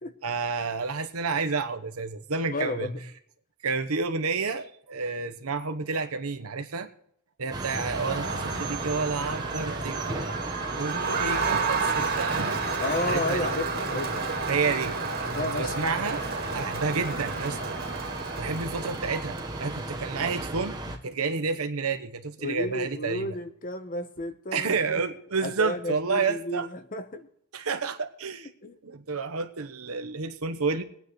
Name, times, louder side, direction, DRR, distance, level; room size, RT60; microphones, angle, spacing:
voice 1, 0.2-2.9 3.6-6.9 7.4-10.0 10.7-12.6 13.0-13.5 14.5-15.0 15.5-16.2 16.5-17.8 18.4-20.8 21.0-23.3 24.5-26.7 27.5-28.5 28.8-30.8, right 4 dB, 85° right, 8 dB, 1.0 m, -30 dB
voice 2, 2.4-3.0 12.8-14.2 15.2-15.8 22.4-25.0 25.4-27.3 28.6-28.8, left 2 dB, 40° left, 9 dB, 1.0 m, -32 dB
sound 1, 7.5-21.0, right 2 dB, 20° right, 1.1 m, -35 dB
Crowd, 7.7-20.2, right 4 dB, 45° right, 2.3 m, -32 dB
23.0 x 9.2 x 3.1 m, 0.71 s
head